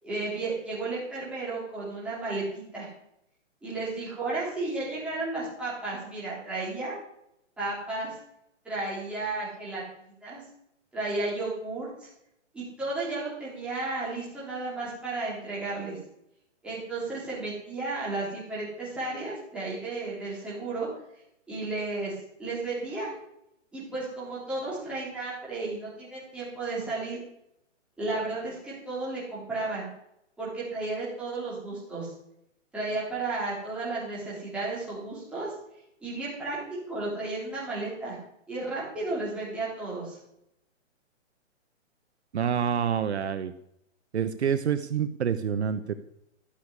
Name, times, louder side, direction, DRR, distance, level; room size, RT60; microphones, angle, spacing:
voice 1, 0.0-2.9 3.6-7.0 7.6-8.1 8.6-10.4 10.9-12.1 12.5-16.0 16.6-20.9 21.5-23.1 23.7-27.2 28.0-29.9 30.4-32.1 32.7-35.5 36.0-38.2 38.5-40.2, right 2 dB, 5° right, -8 dB, 3.8 m, -33 dB
voice 2, 42.3-43.5 44.1-45.9, right 8 dB, 60° right, 11 dB, 1.0 m, -27 dB
13.5 x 6.7 x 9.6 m, 0.77 s
hypercardioid pair, 180°, 37 cm